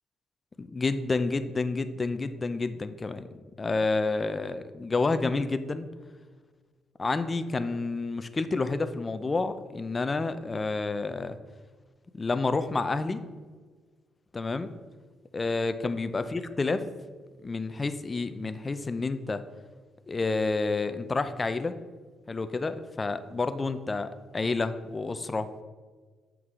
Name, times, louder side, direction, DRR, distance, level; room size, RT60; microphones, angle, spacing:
voice 1, 0.6-3.3 3.6-5.9 7.0-11.4 12.1-13.2 14.3-14.7 15.3-16.8 17.4-19.4 20.1-21.7 22.3-25.6, left 3 dB, 30° left, 11 dB, 0.5 m, -29 dB
8.3 x 4.6 x 3.7 m, 1.4 s
cardioid pair, 90°, 0 cm